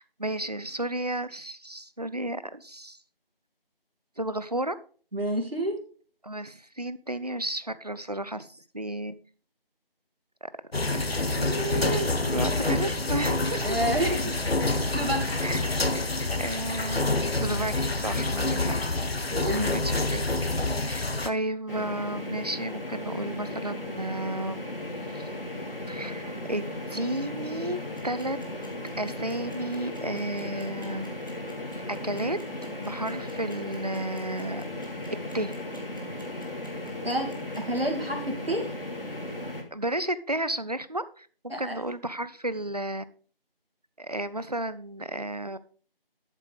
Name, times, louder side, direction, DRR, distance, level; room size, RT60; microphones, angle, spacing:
voice 1, 0.0-3.0 4.2-4.8 6.2-9.1 10.4-10.5 11.3-14.3 15.4-15.7 16.3-18.7 19.5-20.3 20.8-24.7 25.1-25.3 25.9-28.4 29.0-31.2 32.0-32.4 32.8-34.7 35.3-35.6 39.7-43.0 44.0-45.6, right 1 dB, 45° right, 15 dB, 0.6 m, -33 dB
voice 2, 5.1-5.8 13.6-14.3 14.9-15.4 18.1-18.6 19.3-19.8 37.0-38.7 41.5-41.8, right 1 dB, 75° right, 3 dB, 2.8 m, -29 dB
sound 1, 10.7-21.3, left 2 dB, 90° left, 1.0 m, -27 dB
sound 2, 21.7-39.6, left 1 dB, 70° left, 3.0 m, -36 dB
sound 3, 27.8-37.8, left 1 dB, 20° left, 1.4 m, -52 dB
12.0 x 7.6 x 3.5 m, 0.42 s
figure-of-eight pair, 170°, 29 cm